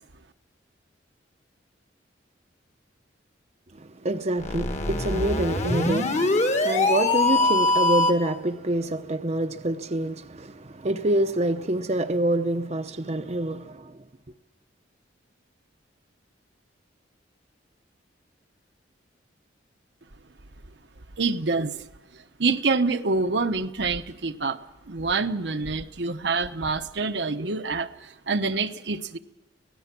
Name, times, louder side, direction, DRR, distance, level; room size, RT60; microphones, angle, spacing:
voice 1, 3.7-14.0, right 1 dB, 35° right, 0.8 m, -27 dB
sound 1, 4.4-8.3, left 2 dB, 40° left, 1.6 m, -23 dB
voice 2, 21.2-21.9 22.1-24.6 24.9-29.2, right 3 dB, 65° right, 1.0 m, -26 dB
25.5 x 18.0 x 6.1 m
head